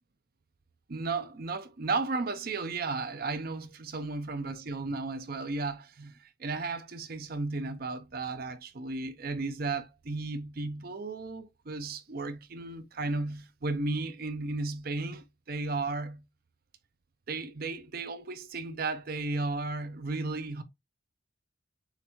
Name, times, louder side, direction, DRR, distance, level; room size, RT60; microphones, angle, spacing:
voice 1, 0.9-16.3 17.3-20.6, right 3 dB, 45° right, 0.5 m, -34 dB
6.5 x 2.6 x 2.9 m
head